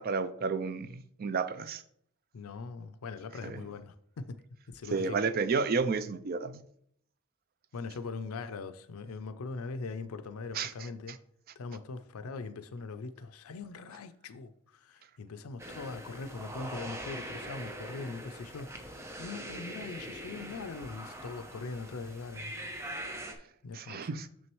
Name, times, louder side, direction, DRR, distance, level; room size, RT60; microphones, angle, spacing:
voice 1, 0.0-1.8 3.4-3.6 4.9-6.6 10.5-10.7 23.7-24.3, right 4 dB, 45° right, 0.4 m, -31 dB
voice 2, 2.3-4.4 4.7-5.3 7.7-11.2 11.6-22.5 23.6-24.2, left 4 dB, 85° left, 0.5 m, -41 dB
sound 1, 15.6-23.3, right 1 dB, 15° right, 0.7 m, -42 dB
6.7 x 6.2 x 3.1 m
head